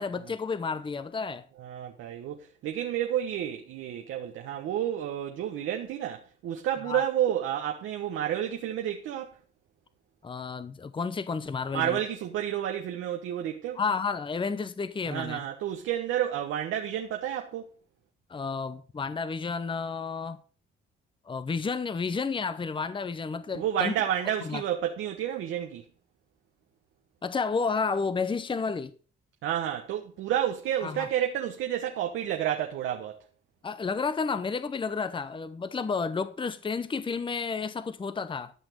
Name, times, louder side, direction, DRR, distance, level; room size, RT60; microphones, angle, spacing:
voice 1, 0.0-1.5 6.9-7.0 10.2-12.0 13.8-15.4 18.3-20.4 21.3-23.9 24.4-24.6 27.2-28.9 30.8-31.1 33.6-38.5, left 5 dB, 25° left, 0.8 m, -31 dB
voice 2, 1.6-9.4 11.7-13.8 15.1-17.7 23.5-25.8 29.4-33.2, right 10 dB, 85° right, 1.3 m, -30 dB
12.0 x 6.0 x 6.4 m
cardioid pair, 90°, 20 cm